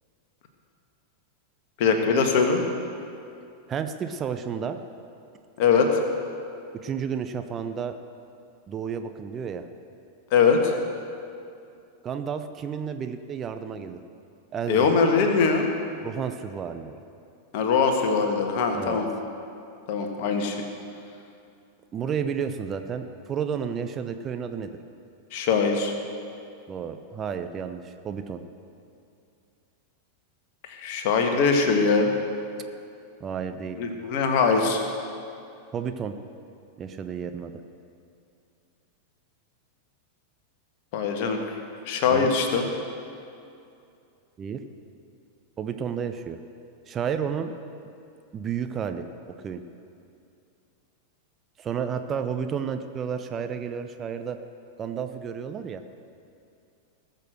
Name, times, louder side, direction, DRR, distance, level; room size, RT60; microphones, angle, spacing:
voice 1, 1.8-2.6 5.6-5.9 10.3-10.7 14.7-15.7 17.5-19.1 19.9-20.6 25.3-25.9 30.7-32.1 33.8-34.8 40.9-41.4 41.9-42.7, left 5 dB, 45° left, 4 dB, 1.6 m, -22 dB
voice 2, 3.7-4.8 6.8-7.9 8.7-9.7 12.0-14.0 14.5-15.0 16.0-16.9 18.7-19.0 21.9-24.7 26.7-28.4 33.2-33.8 35.7-36.1 36.8-37.5 42.1-42.3 44.4-44.6 45.6-46.4 46.9-47.5 48.3-49.0 49.4-49.6 51.6-54.4 54.8-55.8, right 7 dB, 25° right, 8 dB, 0.7 m, -31 dB
19.5 x 6.7 x 6.5 m, 2.5 s
figure-of-eight pair, 90°, 0 cm